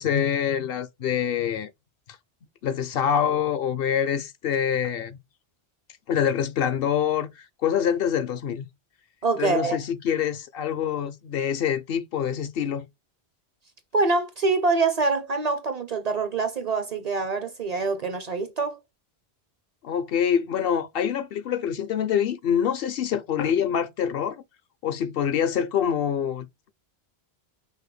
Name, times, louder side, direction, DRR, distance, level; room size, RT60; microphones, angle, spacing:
voice 1, 0.0-1.7 2.6-5.2 6.1-8.7 9.4-12.9 19.8-24.4 24.8-26.7, left 8 dB, 65° left, 0.7 m, -25 dB
voice 2, 9.2-9.8 13.9-18.8, right 3 dB, 45° right, 0.6 m, -25 dB
5.4 x 2.1 x 3.1 m
omnidirectional pair, 1.1 m